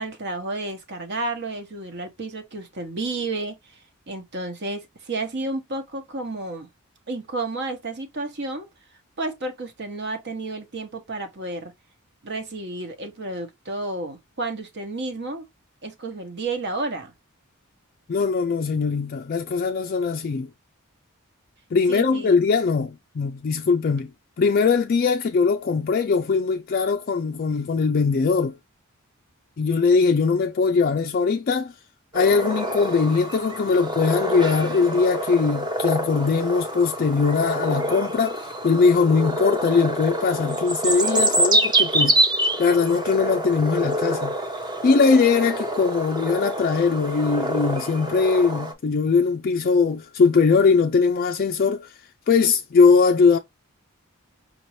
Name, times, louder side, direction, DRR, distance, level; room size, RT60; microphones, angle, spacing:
voice 1, 0.0-3.6 4.1-6.7 7.1-8.7 9.2-11.7 12.2-15.5 15.8-17.1 21.9-22.4, right 2 dB, 50° right, 1.1 m, -31 dB
voice 2, 18.1-20.5 21.7-24.1 24.4-28.6 29.6-31.7 32.1-42.2 42.6-44.4 44.8-51.9 52.3-53.4, left 5 dB, 45° left, 0.4 m, -21 dB
sound 1, 32.1-48.7, right 1 dB, 20° right, 0.8 m, -26 dB
5.2 x 2.7 x 3.0 m
head